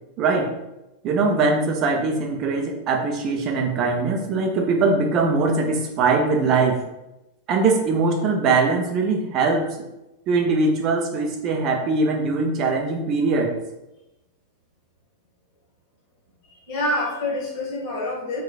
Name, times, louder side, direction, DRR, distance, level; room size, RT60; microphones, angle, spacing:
voice 1, 0.2-0.5 1.0-6.8 7.5-9.7 10.3-13.5, right 3 dB, 35° right, 2 dB, 0.4 m, -21 dB
voice 2, 16.4-18.4, left 1 dB, 45° left, -3 dB, 1.1 m, -27 dB
3.0 x 2.2 x 2.3 m, 0.93 s
figure-of-eight pair, 90°, 0 cm